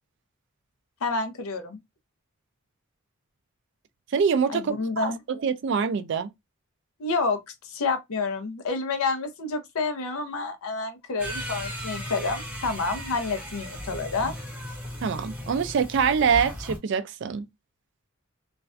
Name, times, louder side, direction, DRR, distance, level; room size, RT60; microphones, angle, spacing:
voice 1, 1.0-1.8 4.5-5.2 7.0-14.3, left 3 dB, 85° left, 0.6 m, -29 dB
voice 2, 4.1-6.3 15.0-17.4, right 6 dB, 55° right, 0.3 m, -25 dB
sound 1, 11.2-16.8, equal, 5° right, 0.7 m, -36 dB
2.4 x 2.1 x 2.4 m
head